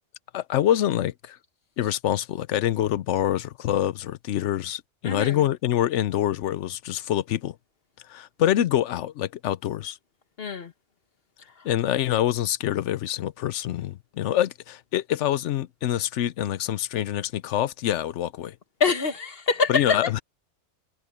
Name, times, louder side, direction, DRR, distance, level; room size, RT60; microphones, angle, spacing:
voice 1, 0.3-1.4 1.8-7.5 8.1-10.0 11.6-18.6 19.7-20.2, left 12 dB, 85° left, 1.0 m, -25 dB
voice 2, 5.0-5.4 10.4-10.7 11.6-11.7 18.8-20.1, left 4 dB, 55° left, 1.4 m, -25 dB
omnidirectional pair, 1.2 m